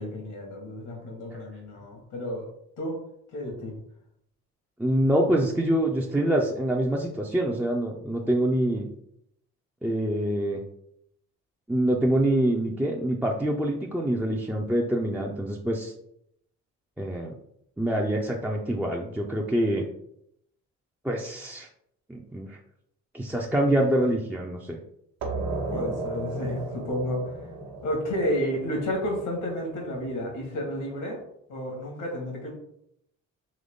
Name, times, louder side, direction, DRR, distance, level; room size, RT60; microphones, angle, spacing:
voice 1, 0.0-2.5 2.8-2.9 3.3-3.7 25.7-27.3 27.8-31.2 31.5-32.5, equal, 85° left, 1 dB, 1.6 m, -31 dB
voice 2, 4.8-8.9 9.8-10.6 11.7-15.9 17.0-17.3 17.8-19.8 21.0-21.7 22.1-22.6 23.1-24.8, right 1 dB, 5° right, -1 dB, 0.5 m, -25 dB
sound 1, 25.2-30.5, right 3 dB, 65° right, 1.0 m, -35 dB
3.8 x 3.1 x 3.6 m, 0.75 s
cardioid pair, 90°, 30 cm